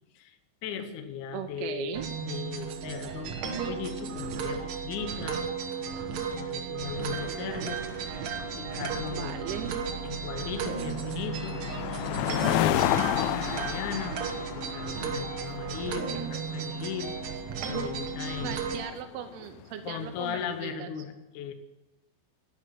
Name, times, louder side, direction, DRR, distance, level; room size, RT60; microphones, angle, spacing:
voice 1, 0.6-5.5 5.8-6.1 6.4-9.4 10.0-11.6 12.1-17.1 17.7-18.6 19.9-21.5, left 8 dB, 65° left, 8 dB, 2.1 m, -38 dB
voice 2, 1.3-2.1 8.7-8.8 9.1-9.9 18.4-20.9, right 9 dB, 80° right, 6 dB, 2.7 m, -38 dB
sound 1, 1.9-18.8, right 6 dB, 65° right, 1.9 m, -34 dB
sound 2, 6.9-20.4, left 13 dB, 80° left, 2.1 m, -33 dB
12.5 x 8.0 x 9.5 m, 1.0 s
omnidirectional pair, 4.7 m